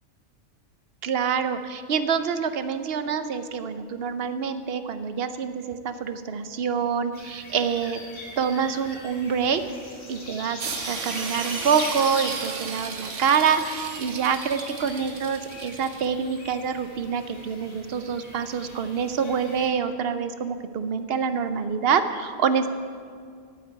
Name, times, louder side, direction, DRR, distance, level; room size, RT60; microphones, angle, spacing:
voice 1, 1.0-8.0 8.4-9.6 10.1-22.7, right 6 dB, 60° right, 10 dB, 0.8 m, -26 dB
sound 1, 7.1-19.7, left 2 dB, 60° left, 2.2 m, -41 dB
sound 2, 10.6-16.1, right 6 dB, 80° right, 1.2 m, -35 dB
9.1 x 8.4 x 8.7 m, 2.2 s
omnidirectional pair, 1.3 m